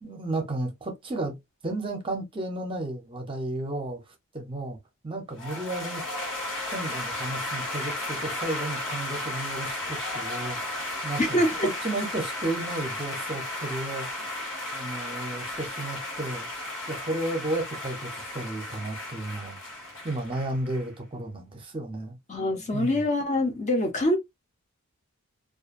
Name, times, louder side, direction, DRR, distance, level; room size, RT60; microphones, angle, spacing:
voice 1, 0.0-1.3 1.6-4.0 4.3-4.8 5.0-6.0 6.7-10.6 11.0-14.3 14.7-16.5 16.9-19.6 20.0-22.2 22.7-23.0, right 2 dB, 25° right, 0.6 m, -33 dB
sound 1, 5.4-20.9, left 1 dB, 65° left, 1.2 m, -34 dB
voice 2, 11.2-11.7 22.3-24.2, left 1 dB, 35° left, 0.6 m, -25 dB
2.4 x 2.1 x 2.5 m
head